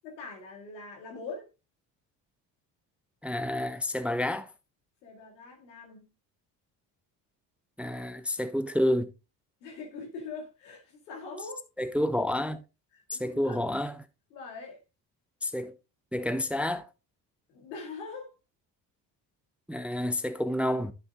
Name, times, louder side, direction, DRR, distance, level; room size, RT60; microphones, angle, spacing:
voice 1, 0.0-1.5 5.0-6.1 9.6-11.6 12.9-13.6 14.3-14.8 17.5-18.3, left 4 dB, 85° left, 2.3 m, -42 dB
voice 2, 3.2-4.5 7.8-9.1 11.8-12.6 13.1-14.0 15.4-15.7 16.1-16.9 19.7-20.9, left 1 dB, 5° right, 0.7 m, -29 dB
11.0 x 7.5 x 2.4 m
hypercardioid pair, 55°, 49 cm